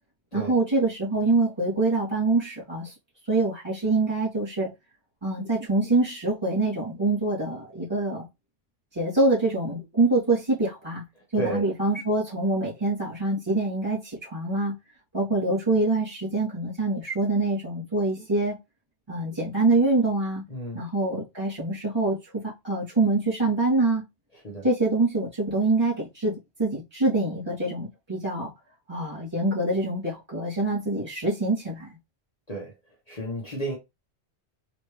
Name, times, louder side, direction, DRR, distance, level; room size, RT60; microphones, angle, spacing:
voice 1, 0.3-2.9 3.3-4.7 5.2-8.2 8.9-11.0 11.3-14.7 15.1-18.5 19.1-20.4 20.7-22.2 22.4-24.0 24.6-26.3 26.6-28.5 28.9-31.9, right 2 dB, 20° right, 2.8 m, -25 dB
voice 2, 11.3-11.7 20.5-20.8 24.4-24.6 32.5-32.7 33.1-33.7, right 1 dB, 35° left, 1.3 m, -32 dB
4.3 x 3.1 x 3.2 m
omnidirectional pair, 1.2 m